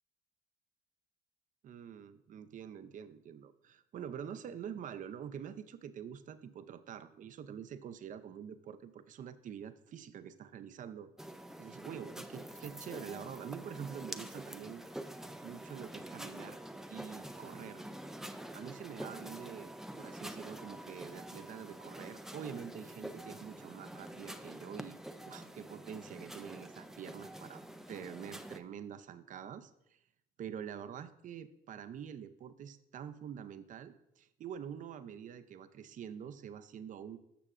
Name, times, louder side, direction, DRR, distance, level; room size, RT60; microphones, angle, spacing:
voice 1, 1.6-11.1 11.6-14.8 15.4-16.6 16.9-17.8 18.5-19.7 20.0-25.0 25.2-27.6 27.9-30.0 30.4-37.2, right 8 dB, 50° right, 11 dB, 0.6 m, -46 dB
sound 1, 11.2-28.6, right 1 dB, ahead, 0.4 m, -47 dB
13.5 x 6.0 x 2.5 m, 0.79 s
cardioid pair, 110°, 17 cm